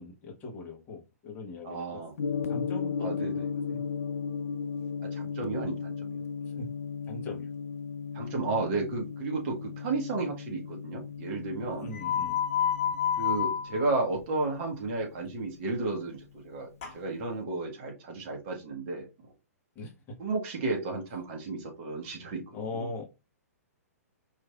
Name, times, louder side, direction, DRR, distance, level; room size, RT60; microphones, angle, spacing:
voice 1, 0.0-2.0 2.5-3.8 6.4-6.7 7.0-7.5 11.8-12.4 19.7-19.9 22.5-23.0, left 3 dB, 25° left, -1 dB, 1.2 m, -40 dB
voice 2, 1.6-2.1 3.0-3.3 5.1-6.2 8.1-11.9 13.2-19.1 20.2-22.4 22.7-22.9, right 3 dB, 40° right, 1 dB, 1.4 m, -33 dB
Gong, 2.2-16.3, left 6 dB, 65° left, 0.5 m, -36 dB
sound 1, 11.9-13.9 16.8-16.9, left 9 dB, 40° left, 1.5 m, -28 dB
4.8 x 3.1 x 2.4 m, 0.27 s
figure-of-eight pair, 115°, 9 cm